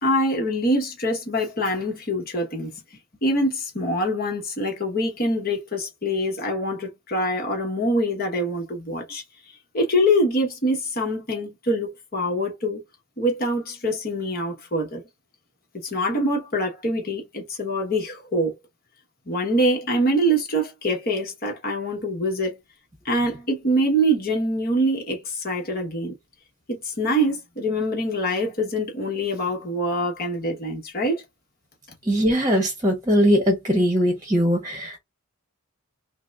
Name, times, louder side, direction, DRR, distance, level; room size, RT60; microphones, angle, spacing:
voice 1, 0.0-2.7 3.2-9.2 9.7-12.8 13.2-15.0 15.8-18.5 19.3-22.6 23.0-26.1 26.7-31.2, equal, 45° left, 1.2 m, -24 dB
voice 2, 32.1-35.0, equal, 15° right, 1.0 m, -20 dB
5.8 x 2.2 x 2.4 m
head